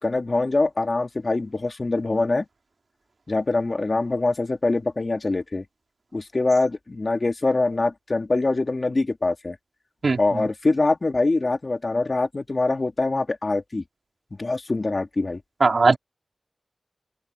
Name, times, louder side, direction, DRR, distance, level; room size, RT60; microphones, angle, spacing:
voice 1, 0.0-2.5 3.3-5.6 6.1-9.6 10.2-13.8 14.4-15.4, left 2 dB, 55° left, 3.0 m, -24 dB
voice 2, 10.0-10.4 15.6-16.0, right 3 dB, 80° right, 3.4 m, -19 dB
open air
wide cardioid pair, 80°, 0 cm